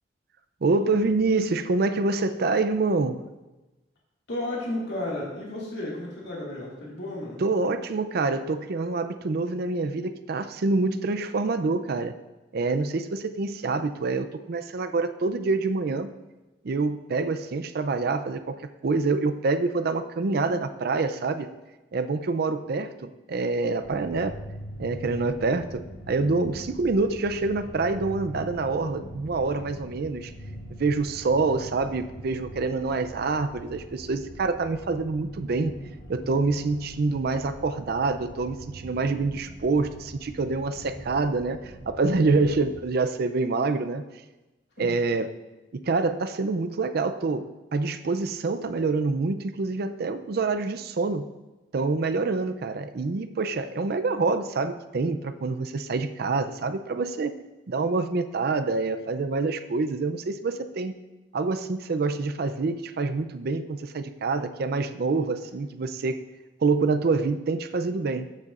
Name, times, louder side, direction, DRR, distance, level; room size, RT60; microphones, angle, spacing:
voice 1, 0.6-3.2 7.4-12.1 12.5-16.1 16.6-18.6 18.8-21.5 21.9-24.4 24.8-25.8 26.1-30.3 30.8-35.7 36.1-44.0 44.8-45.3 45.7-51.3 51.7-57.3 57.7-60.9 61.3-66.2 66.6-68.3, right 3 dB, 55° right, 9 dB, 0.5 m, -26 dB
voice 2, 4.3-7.4 44.8-44.9, left 1 dB, 70° left, -4 dB, 2.1 m, -33 dB
sound 1, 23.8-42.8, equal, 85° left, 2.7 m, -42 dB
13.0 x 6.7 x 2.5 m, 1.1 s
head